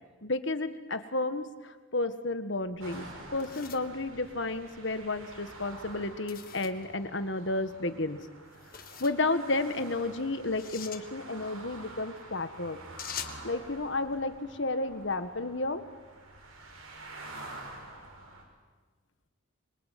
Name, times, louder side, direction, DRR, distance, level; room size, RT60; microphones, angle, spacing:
voice 1, 0.2-8.2 9.0-12.8 13.4-15.8, left 2 dB, 60° left, 10 dB, 1.7 m, -32 dB
sound 1, 2.6-4.9 6.3-6.9 8.5-9.2 10.4-11.0 13.0-13.4, left 9 dB, 45° left, 1.6 m, -44 dB
sound 2, 2.8-18.4, right 2 dB, 85° right, 5.9 m, -48 dB
26.0 x 24.0 x 9.4 m, 1.3 s
head